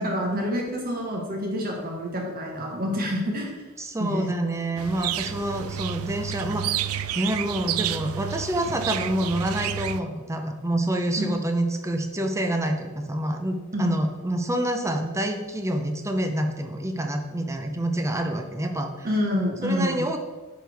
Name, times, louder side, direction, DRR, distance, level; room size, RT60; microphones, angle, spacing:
voice 1, 0.0-3.5 4.0-4.3 11.2-11.3 13.7-13.9 19.0-20.0, equal, 40° right, 0 dB, 1.2 m, -27 dB
voice 2, 3.8-6.8 7.1-19.1 19.6-20.2, right 1 dB, 15° right, 5 dB, 0.7 m, -27 dB
sound 1, 4.8-10.0, right 10 dB, 70° right, 0.4 m, -30 dB
9.4 x 6.1 x 3.5 m, 1.4 s
head